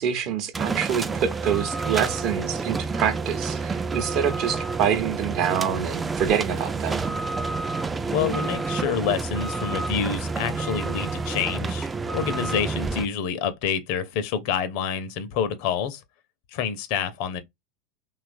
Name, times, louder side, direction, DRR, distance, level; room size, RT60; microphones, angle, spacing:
voice 1, 0.0-7.1, right 8 dB, 50° right, 0.7 m, -26 dB
sound 1, 0.5-13.1, right 4 dB, 20° right, 0.3 m, -29 dB
voice 2, 8.1-16.0 16.5-17.4, left 7 dB, 60° left, 0.6 m, -27 dB
2.9 x 2.4 x 2.5 m
hypercardioid pair, 90°, 0 cm